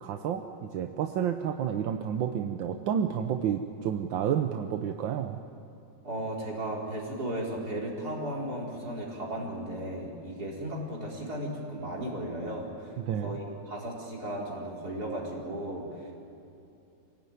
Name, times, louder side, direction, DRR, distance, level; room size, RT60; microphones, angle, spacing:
voice 1, 0.0-5.4 13.0-13.3, right 8 dB, 85° right, 6 dB, 1.6 m, -30 dB
voice 2, 6.0-16.1, right 1 dB, 55° right, -3 dB, 4.8 m, -35 dB
26.5 x 17.0 x 9.4 m, 2.7 s
omnidirectional pair, 2.0 m